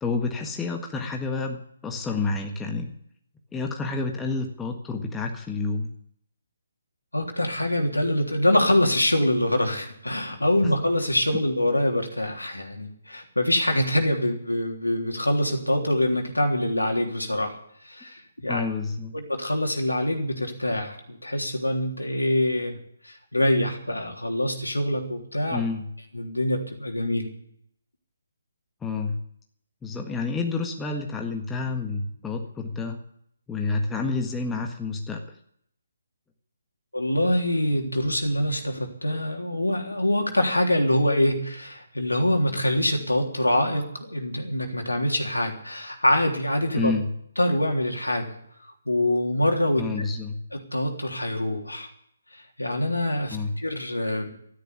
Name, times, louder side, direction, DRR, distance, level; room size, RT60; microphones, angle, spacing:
voice 1, 0.0-2.9 3.5-5.9 10.6-10.7 18.5-19.1 25.5-25.9 28.8-29.2 29.8-33.0 33.5-35.2 46.8-47.1 49.8-50.4 53.3-53.5, left 4 dB, 10° left, 2 dB, 1.6 m, -29 dB
voice 2, 7.1-17.6 17.9-18.7 19.1-22.8 23.0-25.6 26.1-27.3 36.9-46.9 47.4-48.4 48.9-49.8 50.5-51.9 52.3-54.3, left 1 dB, 90° left, 2 dB, 3.4 m, -25 dB
13.5 x 10.0 x 9.6 m, 0.69 s
figure-of-eight pair, 140°, 0 cm